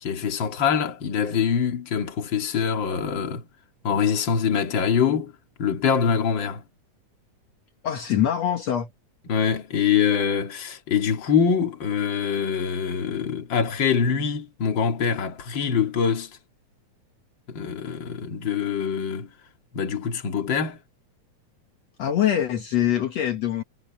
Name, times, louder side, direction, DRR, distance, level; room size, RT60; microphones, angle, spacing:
voice 1, 0.0-3.5 3.8-5.3 5.6-6.6 9.3-16.4 17.5-19.3 19.7-20.8, left 7 dB, 40° left, 2.7 m, -24 dB
voice 2, 7.8-8.9 22.0-23.6, left 10 dB, 65° left, 2.5 m, -23 dB
omnidirectional pair, 3.4 m